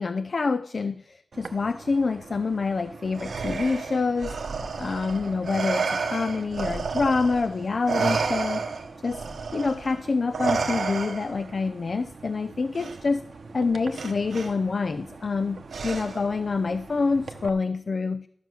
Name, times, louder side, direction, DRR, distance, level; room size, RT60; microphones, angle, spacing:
voice 1, 0.0-8.6 9.0-9.2 9.5-13.3 13.5-18.3, left 4 dB, 45° left, 14 dB, 0.3 m, -27 dB
sound 1, 1.3-17.5, right 4 dB, 60° right, 0.9 m, -45 dB
Respiratory sounds, 3.2-7.5 7.9-11.5 12.8-13.0 13.9-14.5 15.7-16.3, right 5 dB, 85° right, 1.3 m, -30 dB
12.5 x 6.4 x 6.3 m, 0.70 s
wide cardioid pair, 135°, 0 cm